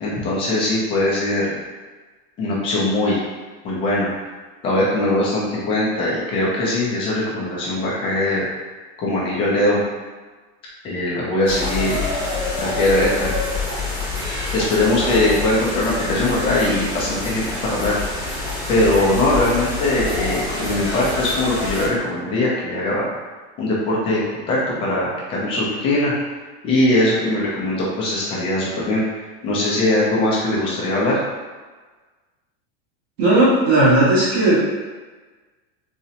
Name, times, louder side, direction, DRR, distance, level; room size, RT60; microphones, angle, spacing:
voice 1, 0.0-1.6 2.4-3.2 3.6-4.1 4.6-8.4 9.0-9.8 10.8-12.0 12.6-13.3 14.5-18.0 18.7-23.2 23.6-24.2 24.5-26.1 26.6-29.0 29.4-31.2, left 1 dB, 20° left, -6 dB, 0.3 m, -21 dB
sound 1, 11.4-21.9, left 3 dB, 5° right, 0.8 m, -26 dB
voice 2, 33.2-34.6, right 2 dB, 65° right, -9 dB, 1.3 m, -15 dB
3.8 x 2.1 x 2.7 m, 1.3 s
supercardioid pair, 170°, 34 cm